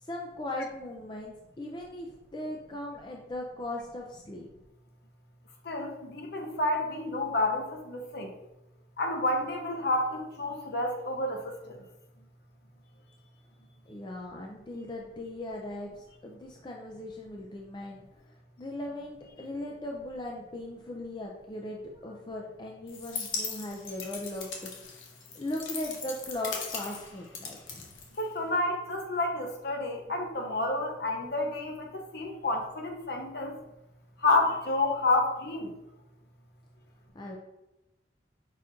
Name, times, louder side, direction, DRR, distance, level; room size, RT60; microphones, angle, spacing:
voice 1, 0.0-4.5 13.9-24.7 25.3-27.9 37.1-37.4, left 1 dB, 25° left, 0 dB, 0.4 m, -38 dB
voice 2, 5.6-8.3 9.0-11.8 28.2-33.6 34.2-35.7, left 2 dB, 55° left, 3 dB, 0.7 m, -29 dB
sound 1, 22.9-28.6, left 5 dB, 85° left, 0.7 m, -39 dB
5.8 x 2.5 x 3.6 m, 0.98 s
head